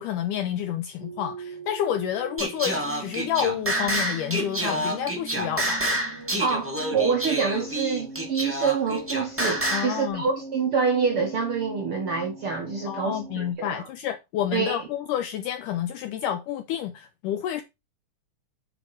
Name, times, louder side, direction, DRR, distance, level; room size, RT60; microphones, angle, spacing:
voice 1, 0.0-5.8 9.7-10.2 12.9-17.6, left 10 dB, 90° left, 1.8 m, -29 dB
sound 1, 1.0-13.5, right 3 dB, 25° right, 1.7 m, -41 dB
Singing, 2.4-10.0, right 1 dB, 10° right, 0.8 m, -28 dB
voice 2, 6.4-13.9 14.5-14.8, right 5 dB, 65° right, 1.4 m, -26 dB
9.0 x 5.3 x 4.5 m
omnidirectional pair, 4.3 m